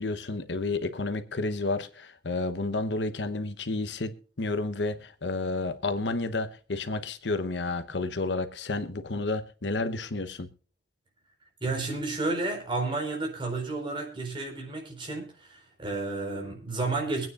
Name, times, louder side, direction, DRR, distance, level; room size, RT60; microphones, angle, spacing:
voice 1, 0.0-10.5, left 2 dB, 80° left, 1.0 m, -31 dB
voice 2, 11.6-17.3, right 3 dB, 30° right, 4.2 m, -31 dB
23.5 x 9.3 x 2.5 m
head